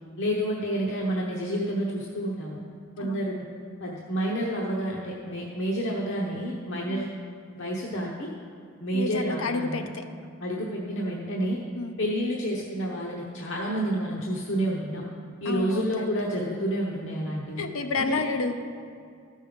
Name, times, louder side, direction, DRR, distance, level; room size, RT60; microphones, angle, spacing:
voice 1, 0.2-2.6 3.0-3.4 3.8-7.1 7.6-8.3 8.8-9.9 10.4-11.6 12.0-15.0 15.4-17.6 18.0-18.2, equal, 65° left, -3 dB, 1.0 m, -29 dB
voice 2, 3.0-3.4 6.9-7.1 8.9-10.1 11.7-12.0 15.4-16.1 17.6-18.5, left 3 dB, 85° left, 7 dB, 0.7 m, -30 dB
13.0 x 5.5 x 5.2 m, 2.3 s
head